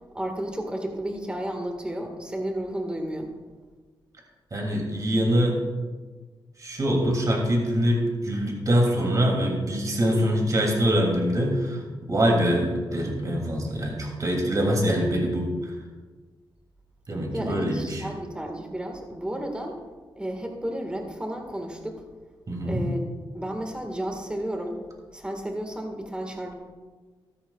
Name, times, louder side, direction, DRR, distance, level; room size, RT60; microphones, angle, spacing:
voice 1, 0.1-3.3 17.3-19.8 20.1-22.0 22.6-23.0 23.3-24.8 25.1-26.5, right 1 dB, 10° right, 3 dB, 1.7 m, -32 dB
voice 2, 4.5-5.6 6.6-11.8 12.1-15.7 17.1-18.0 22.5-22.9, equal, 40° right, 0 dB, 2.7 m, -24 dB
14.0 x 13.0 x 2.4 m, 1.4 s
wide cardioid pair, 110°, 9 cm